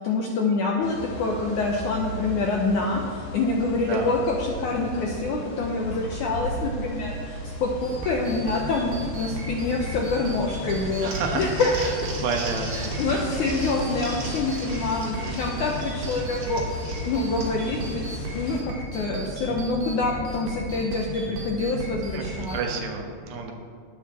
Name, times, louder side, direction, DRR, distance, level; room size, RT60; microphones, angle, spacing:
voice 1, 0.0-12.2 12.7-16.6 17.0-22.6, left 3 dB, 80° left, 0 dB, 1.8 m, -26 dB
sound 1, 0.8-18.6, left 1 dB, 55° left, 3.1 m, -36 dB
sound 2, 7.8-22.7, right 1 dB, 65° right, 3.7 m, -35 dB
Crumpling crinkling, 10.8-17.7, right 3 dB, 45° right, 2.2 m, -39 dB
voice 2, 11.0-11.4 12.2-13.3 13.5-13.6 15.2-15.4 22.1-23.5, right 5 dB, 85° right, 2 dB, 3.4 m, -30 dB
19.0 x 7.3 x 4.3 m, 2.1 s
omnidirectional pair, 4.7 m